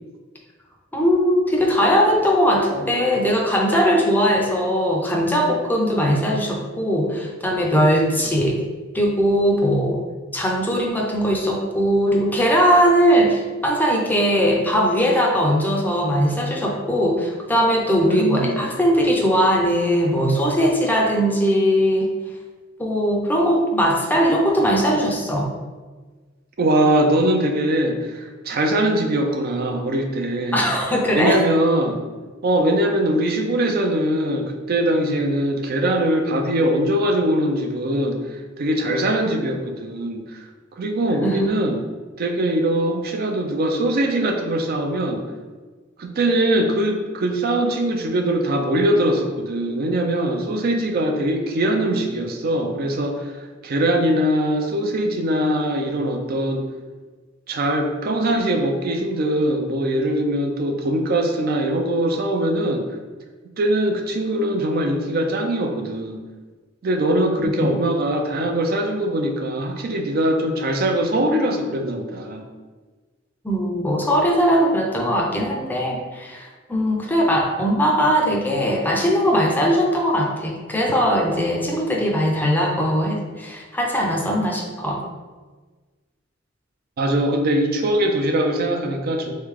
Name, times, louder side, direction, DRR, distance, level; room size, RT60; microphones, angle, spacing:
voice 1, 0.9-8.6 8.9-10.0 10.3-22.1 22.8-25.5 30.5-31.4 41.2-41.5 67.6-67.7 73.4-85.0, equal, 10° left, -1 dB, 0.5 m, -20 dB
voice 2, 18.1-18.8 26.6-30.6 31.1-32.0 32.4-40.4 40.7-41.8 42.2-45.2 46.0-56.7 57.5-62.9 63.6-66.2 66.8-72.5 87.0-89.3, right 1 dB, 50° right, 3 dB, 0.4 m, -22 dB
3.7 x 3.2 x 3.6 m, 1.3 s
head